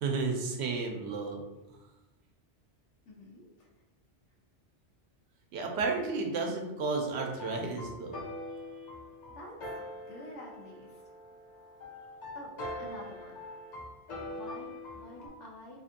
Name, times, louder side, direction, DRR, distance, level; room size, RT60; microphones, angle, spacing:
voice 1, 0.0-1.4 5.5-8.2, right 4 dB, 70° right, 2 dB, 0.8 m, -32 dB
voice 2, 3.1-3.7 9.3-9.6 9.9-11.0 12.3-12.5 12.8-13.4 14.2-15.8, left 1 dB, 90° left, -1 dB, 1.1 m, -48 dB
sound 1, 7.3-15.3, left 1 dB, 50° left, 0.6 m, -43 dB
2.8 x 2.6 x 2.5 m, 1.0 s
omnidirectional pair, 1.2 m